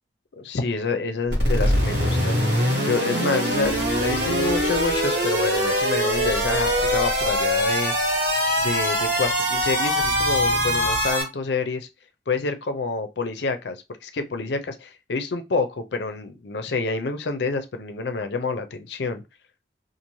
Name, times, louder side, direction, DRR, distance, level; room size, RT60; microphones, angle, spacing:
voice 1, 0.4-2.4 2.8-7.9 8.6-11.9 12.3-13.8 14.0-19.2, left 4 dB, 65° left, 0.5 m, -28 dB
sound 1, 1.3-11.2, equal, 65° right, 1.4 m, -23 dB
sound 2, 3.6-11.1, equal, 35° right, 1.1 m, -38 dB
2.7 x 2.5 x 3.0 m
head